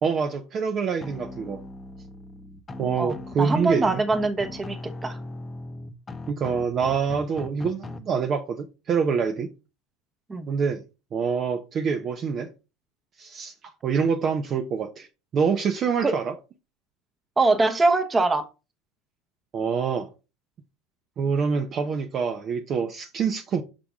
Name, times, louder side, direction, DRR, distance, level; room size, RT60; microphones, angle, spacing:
voice 1, 0.0-1.6 2.8-4.0 6.3-9.5 10.5-10.8 11.1-12.5 13.2-13.5 13.8-15.1 15.3-16.3 19.5-20.1 21.2-23.6, right 6 dB, 40° right, 0.7 m, -26 dB
sound 1, 1.0-8.0, left 2 dB, 25° left, 0.8 m, -39 dB
voice 2, 3.0-5.2 10.3-10.5 16.0-16.2 17.4-18.5, right 3 dB, 20° right, 1.0 m, -23 dB
5.9 x 4.9 x 3.6 m
hypercardioid pair, 90°, 0 cm